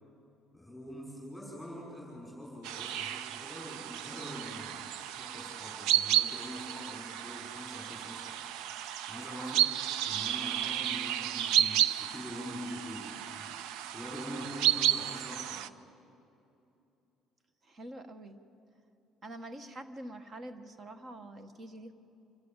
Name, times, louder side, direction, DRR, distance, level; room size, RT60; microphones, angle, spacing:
voice 1, 0.5-8.4 9.1-9.7 10.1-13.5 13.9-15.6, equal, ahead, -5 dB, 5.4 m, -44 dB
sound 1, 2.6-15.7, right 12 dB, 85° right, 0.5 m, -32 dB
voice 2, 10.2-10.6 17.6-18.4 19.2-21.9, right 1 dB, 35° right, 9 dB, 1.3 m, -46 dB
26.5 x 13.0 x 8.9 m, 2.8 s
cardioid pair, 135°, 0 cm